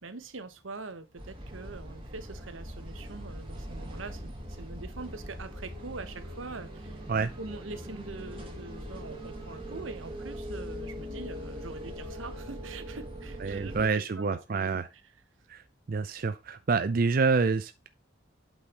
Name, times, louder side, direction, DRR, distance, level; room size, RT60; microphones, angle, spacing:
voice 1, 0.0-15.0, right 3 dB, 90° right, 1.0 m, -43 dB
sound 1, 1.2-13.9, equal, 25° right, 1.9 m, -41 dB
voice 2, 13.4-14.9 15.5-15.6 15.9-17.9, right 4 dB, 50° right, 0.5 m, -27 dB
8.1 x 5.6 x 2.9 m
head